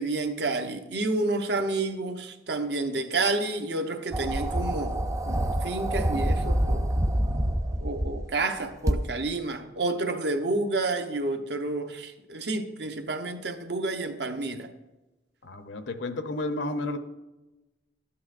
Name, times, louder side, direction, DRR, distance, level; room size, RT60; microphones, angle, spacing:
voice 1, 0.0-6.9 7.8-14.7, right 2 dB, 60° right, 0.8 m, -30 dB
sound 1, 4.1-8.3 8.9-9.0, right 1 dB, 15° right, 0.4 m, -26 dB
voice 2, 15.4-17.0, left 2 dB, 70° left, 0.7 m, -32 dB
12.5 x 8.6 x 2.5 m
head